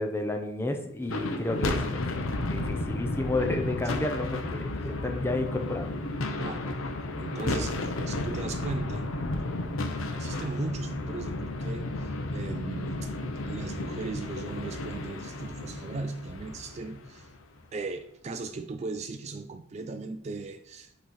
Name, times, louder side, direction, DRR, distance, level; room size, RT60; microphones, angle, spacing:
voice 1, 0.0-2.0 2.5-5.9, left 2 dB, 10° left, 4 dB, 0.6 m, -31 dB
sound 1, 1.0-17.4, left 2 dB, 90° left, 0.8 m, -33 dB
voice 2, 7.2-9.2 10.1-13.1 13.4-17.3 17.7-20.9, right 3 dB, 35° right, 8 dB, 0.3 m, -37 dB
8.2 x 3.1 x 4.2 m, 0.71 s
head